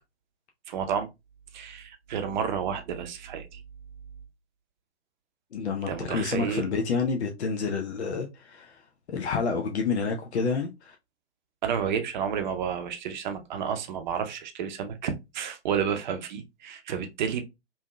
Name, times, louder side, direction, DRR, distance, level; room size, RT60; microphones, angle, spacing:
voice 1, 0.7-1.1 1.5-3.6 5.9-6.7 11.6-17.4, right 7 dB, 40° right, 0.6 m, -31 dB
voice 2, 5.5-8.8 9.1-11.0, left 5 dB, 65° left, 0.6 m, -29 dB
3.4 x 2.7 x 2.2 m
figure-of-eight pair, 120°, 35 cm